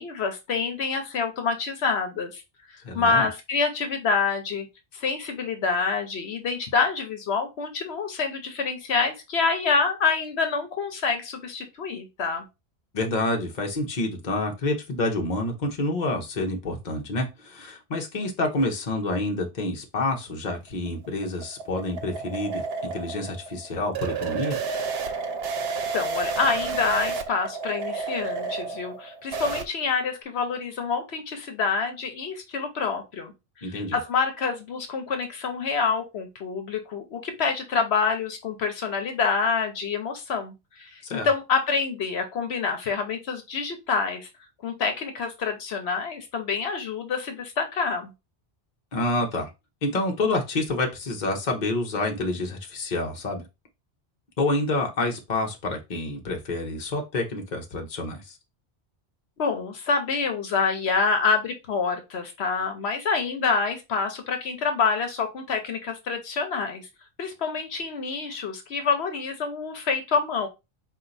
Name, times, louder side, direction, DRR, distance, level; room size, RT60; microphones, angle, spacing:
voice 1, 0.0-2.4 2.9-4.7 4.9-12.5 25.9-33.3 33.6-44.3 44.6-48.1 59.4-66.9 67.2-70.5, left 5 dB, 75° left, 6 dB, 1.1 m, -27 dB
voice 2, 2.8-3.3 12.9-24.6 33.6-34.0 41.1-41.3 48.9-49.5 49.8-53.4 54.4-58.3, left 2 dB, 45° left, 2 dB, 1.0 m, -28 dB
sound 1, 20.7-29.6, right 4 dB, 70° right, 0.9 m, -31 dB
4.4 x 2.5 x 3.9 m, 0.25 s
omnidirectional pair, 1.1 m